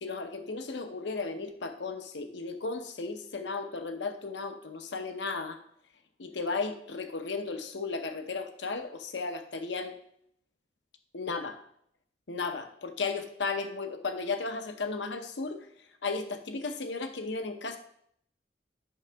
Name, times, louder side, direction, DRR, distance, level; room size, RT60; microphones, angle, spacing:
voice 1, 0.0-5.6 6.2-9.9 11.1-11.6 12.3-15.6 16.0-17.8, left 4 dB, 80° left, 7 dB, 0.8 m, -35 dB
8.8 x 5.9 x 3.4 m, 0.69 s
head